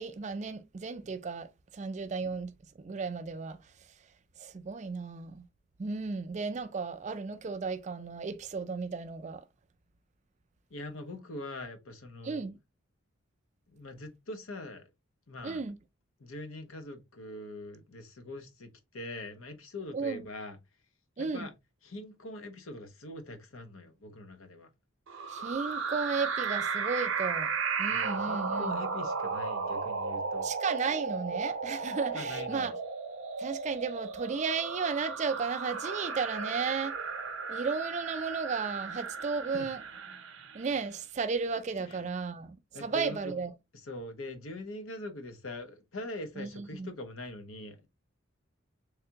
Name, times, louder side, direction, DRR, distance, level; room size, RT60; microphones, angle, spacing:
voice 1, 0.0-1.5 1.7-2.5 2.8-3.6 4.4-5.4 5.8-9.4 12.2-12.5 15.4-15.8 19.9-20.2 21.2-21.5 25.3-27.5 27.8-28.8 30.4-32.7 33.4-37.0 37.5-39.8 40.5-43.5 46.4-46.9, right 5 dB, 35° right, 0.3 m, -34 dB
voice 2, 10.7-12.4 13.7-14.9 15.3-15.6 16.2-20.6 21.2-21.5 21.8-24.7 27.9-30.5 32.1-32.8 39.5-39.7 41.8-42.1 42.7-43.4 43.7-47.9, left 1 dB, 80° left, 0.8 m, -43 dB
sound 1, 25.1-40.7, right 5 dB, 70° right, 0.7 m, -35 dB
3.4 x 3.3 x 2.8 m
head